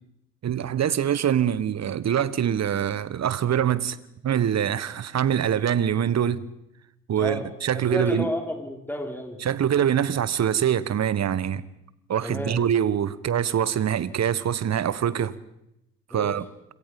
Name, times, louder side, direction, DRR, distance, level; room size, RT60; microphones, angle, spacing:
voice 1, 0.4-4.0 4.2-6.4 7.1-8.3 9.4-11.6 12.1-15.3 16.1-16.4, right 9 dB, 45° right, 1.3 m, -24 dB
voice 2, 7.2-7.5 7.7-9.4 12.2-12.7 16.1-16.3, left 1 dB, 5° left, 5.4 m, -31 dB
27.0 x 25.5 x 5.4 m
hypercardioid pair, 50°, 38 cm